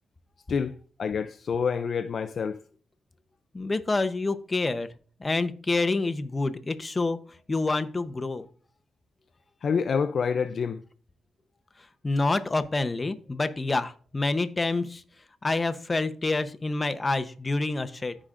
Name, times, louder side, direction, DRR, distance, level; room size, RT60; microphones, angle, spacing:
voice 1, 0.5-2.6 9.6-10.8, left 6 dB, 60° left, 0.4 m, -27 dB
voice 2, 3.5-4.9 5.2-7.2 7.5-8.5 12.0-15.0 15.4-18.2, left 3 dB, 30° left, 0.8 m, -27 dB
14.5 x 5.0 x 2.5 m
cardioid pair, 75°, 0 cm